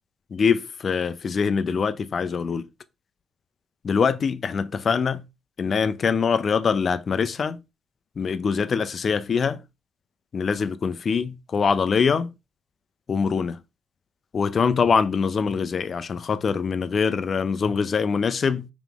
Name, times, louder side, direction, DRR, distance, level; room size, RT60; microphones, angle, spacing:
voice 1, 0.3-2.6 3.8-5.2 5.6-7.6 8.2-9.6 10.3-12.3 13.1-13.6 14.3-18.7, left 6 dB, 45° left, 0.4 m, -23 dB
3.6 x 3.0 x 3.4 m
cardioid pair, 90°, 0 cm